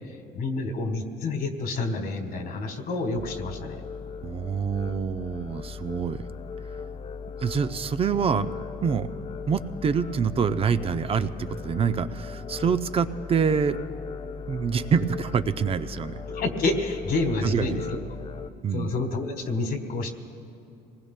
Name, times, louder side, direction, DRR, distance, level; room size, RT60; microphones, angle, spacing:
voice 1, 0.3-3.8 16.3-18.0 18.7-20.1, left 3 dB, 60° left, 5 dB, 1.5 m, -28 dB
sound 1, 3.2-18.5, left 5 dB, 35° left, 0.5 m, -38 dB
voice 2, 4.2-6.2 7.4-9.1 9.5-13.8 14.5-16.2 17.4-17.8 18.6-18.9, right 6 dB, 35° right, 11 dB, 0.5 m, -26 dB
27.0 x 19.5 x 2.2 m, 2.7 s
cardioid pair, 110°, 17 cm